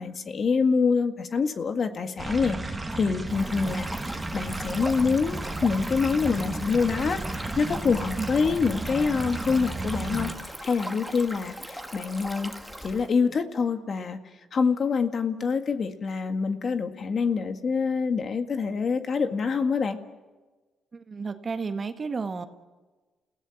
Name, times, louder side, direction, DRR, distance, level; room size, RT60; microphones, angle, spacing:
voice 1, 0.0-12.5 12.8-14.2 14.5-20.0, left 5 dB, 50° left, 8 dB, 1.9 m, -26 dB
sound 1, 2.2-10.3, right 2 dB, 15° right, 2.6 m, -33 dB
Stream, 3.3-13.1, equal, ahead, 2.0 m, -40 dB
voice 2, 20.9-22.5, right 4 dB, 35° right, 8 dB, 1.6 m, -32 dB
29.5 x 17.0 x 7.3 m, 1.3 s
cardioid pair, 90°, 0 cm